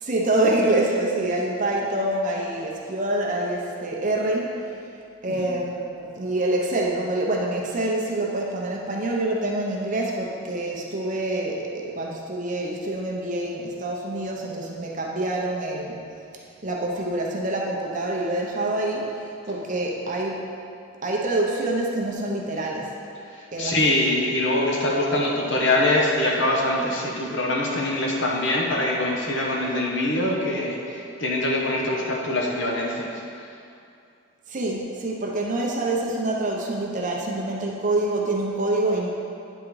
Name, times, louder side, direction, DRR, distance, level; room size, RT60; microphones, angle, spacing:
voice 1, 0.0-4.8 5.2-16.0 16.6-20.4 21.0-22.9 23.5-23.8 34.5-39.1, right 2 dB, 35° right, -2 dB, 0.8 m, -26 dB
voice 2, 23.3-33.1, left 1 dB, 55° left, -2 dB, 1.0 m, -23 dB
8.8 x 3.7 x 4.7 m, 2.5 s
head